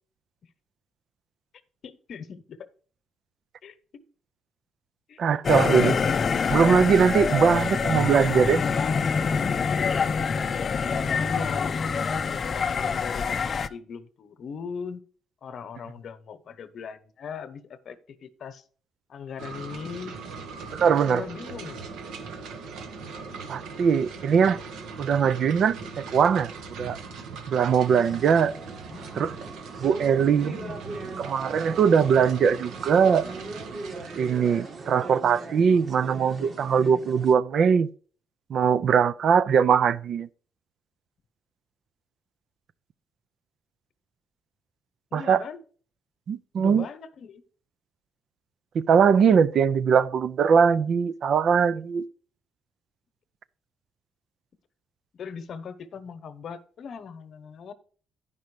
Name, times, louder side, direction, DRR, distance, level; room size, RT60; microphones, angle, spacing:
voice 1, 1.8-2.7 3.6-4.0 5.1-5.2 10.6-11.8 12.2-15.0 15.4-18.6 19.1-20.2 20.8-21.9 28.9-29.3 30.2-30.8 45.1-45.6 46.5-47.4 55.1-57.7, left 6 dB, 60° left, 1.0 m, -39 dB
voice 2, 5.2-6.0 6.5-8.6 20.7-21.2 23.5-24.6 25.0-27.0 27.5-28.5 29.1-29.3 29.8-30.5 31.2-33.3 34.2-37.9 38.5-40.3 45.1-45.4 46.3-46.9 48.7-52.1, right 6 dB, 60° right, 0.5 m, -21 dB
sound 1, 5.4-13.7, left 5 dB, 45° left, 0.6 m, -25 dB
sound 2, 19.4-35.1, right 4 dB, 85° right, 1.4 m, -40 dB
sound 3, 27.7-37.3, right 3 dB, 45° right, 1.7 m, -40 dB
10.5 x 5.5 x 4.9 m
cardioid pair, 90°, 0 cm